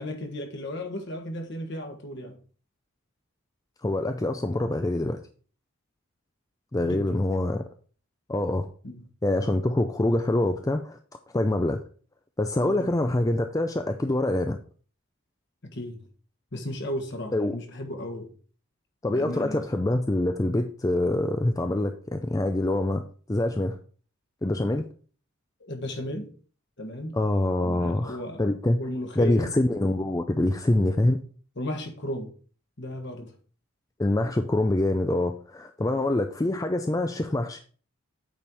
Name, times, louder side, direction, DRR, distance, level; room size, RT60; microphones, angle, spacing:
voice 1, 0.0-2.4 6.8-7.2 8.8-9.0 12.6-12.9 15.6-16.0 16.5-18.3 19.1-19.7 25.7-26.3 26.8-27.2 27.6-28.5 28.8-29.6 31.0-31.2 31.6-32.3 32.8-33.3, left 1 dB, 55° left, 1.5 m, -35 dB
voice 2, 3.8-5.2 6.7-7.6 8.3-8.7 9.2-11.0 11.3-11.8 12.4-14.6 17.3-17.6 19.0-23.0 23.3-23.8 24.4-24.9 27.1-28.8 29.2-31.2 34.0-37.6, left 1 dB, 15° left, 0.4 m, -25 dB
8.7 x 4.4 x 4.7 m
head